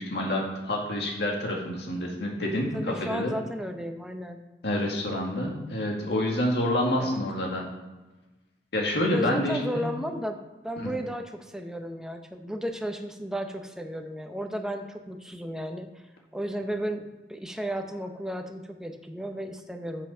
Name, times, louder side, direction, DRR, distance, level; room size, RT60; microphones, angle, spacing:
voice 1, 0.0-3.3 4.6-7.7 8.7-9.9, left 1 dB, 65° left, -1 dB, 2.1 m, -28 dB
voice 2, 2.7-4.4 7.0-7.2 9.1-10.4 10.6-15.9 16.3-20.1, equal, 5° right, 5 dB, 0.7 m, -34 dB
8.0 x 5.7 x 5.5 m, 1.2 s
head